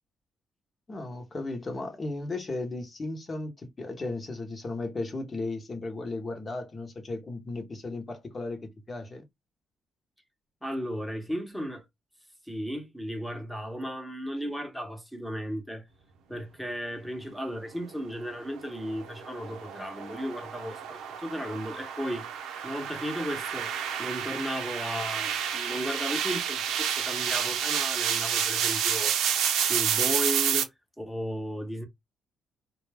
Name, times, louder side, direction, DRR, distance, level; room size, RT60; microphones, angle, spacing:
voice 1, 0.9-9.2, left 2 dB, 30° left, 0.9 m, -35 dB
voice 2, 10.6-11.8 12.5-15.8 16.3-22.3 22.6-23.7 24.0-29.2 29.6-30.7 31.0-31.9, equal, ahead, 0.9 m, -35 dB
sound 1, 18.6-30.6, right 8 dB, 90° right, 0.5 m, -30 dB
2.3 x 2.0 x 3.3 m
cardioid pair, 90°, 0 cm